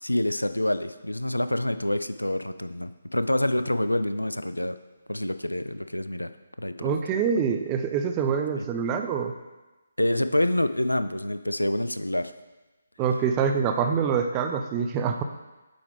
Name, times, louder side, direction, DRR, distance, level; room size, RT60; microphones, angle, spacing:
voice 1, 0.0-4.8 5.1-6.3 6.6-6.9 8.5-8.7 10.0-12.3, left 1 dB, 85° left, 11 dB, 0.3 m, -27 dB
voice 2, 6.8-9.3 13.0-15.2, right 6 dB, 20° right, 5 dB, 0.4 m, -25 dB
7.7 x 4.9 x 3.4 m, 1.1 s
figure-of-eight pair, 145°, 0 cm